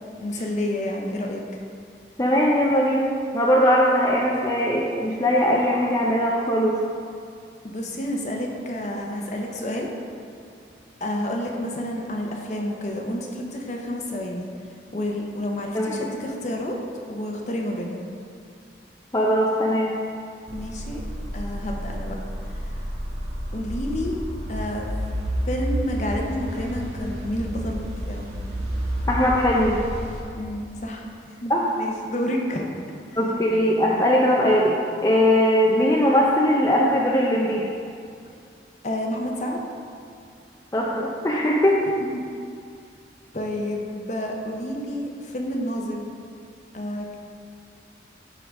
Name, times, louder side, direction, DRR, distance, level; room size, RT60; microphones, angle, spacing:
voice 1, 0.2-1.4 7.6-9.9 11.0-14.5 14.9-16.8 17.1-18.1 20.5-21.0 21.3-22.2 22.5-22.8 23.5-24.2 24.5-24.9 25.5-28.3 30.4-31.5 31.8-32.7 38.8-39.7 43.3-46.1 46.7-47.1, left 1 dB, 40° left, 1 dB, 0.8 m, -29 dB
voice 2, 2.2-3.0 3.3-6.7 15.7-15.9 19.1-20.0 29.1-29.8 31.5-31.6 33.2-37.6 40.7-41.8, equal, 20° left, -4 dB, 0.5 m, -20 dB
sound 1, 20.5-30.2, equal, 75° right, 1.7 m, -30 dB
11.0 x 3.9 x 4.7 m, 2.3 s
head